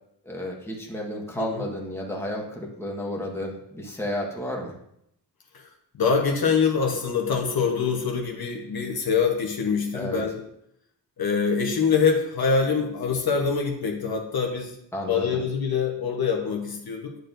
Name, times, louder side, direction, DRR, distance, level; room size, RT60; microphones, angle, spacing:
voice 1, 0.2-4.7 9.9-10.2 14.9-15.4, left 1 dB, 5° left, -2 dB, 1.3 m, -32 dB
voice 2, 5.9-10.4 11.2-14.8 15.1-17.2, left 5 dB, 60° left, 2 dB, 1.1 m, -24 dB
9.4 x 6.6 x 2.6 m, 0.76 s
wide cardioid pair, 120°, 41 cm